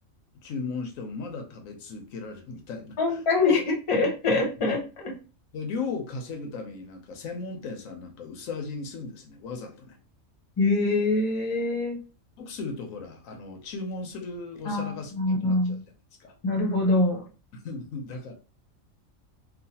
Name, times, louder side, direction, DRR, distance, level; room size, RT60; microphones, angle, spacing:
voice 1, 0.4-3.2 4.6-4.7 5.5-10.0 12.4-15.1 15.4-15.8 16.2-16.3 17.5-18.3, left 4 dB, 90° left, 1.1 m, -36 dB
voice 2, 3.0-5.1 10.6-12.0 14.7-15.8 16.4-17.2, left 3 dB, 30° left, 0.7 m, -24 dB
3.0 x 2.4 x 2.7 m
omnidirectional pair, 1.4 m